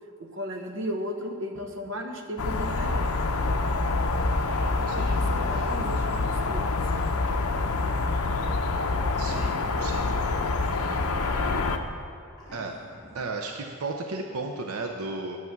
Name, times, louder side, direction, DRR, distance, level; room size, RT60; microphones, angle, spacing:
voice 1, 0.2-3.1 4.7-6.8 10.0-10.2, equal, 55° right, 3 dB, 1.0 m, -35 dB
sound 1, 2.4-11.8, left 3 dB, 80° left, 0.7 m, -26 dB
sound 2, 4.0-5.8 7.3-8.2 9.0-9.7 10.7-11.5 11.8-11.9 12.4-13.3, equal, 15° left, 2.4 m, -47 dB
voice 2, 9.2-10.1 12.5-12.7 13.1-15.4, right 3 dB, 80° right, 3 dB, 0.7 m, -34 dB
9.6 x 8.1 x 6.0 m, 2.6 s
head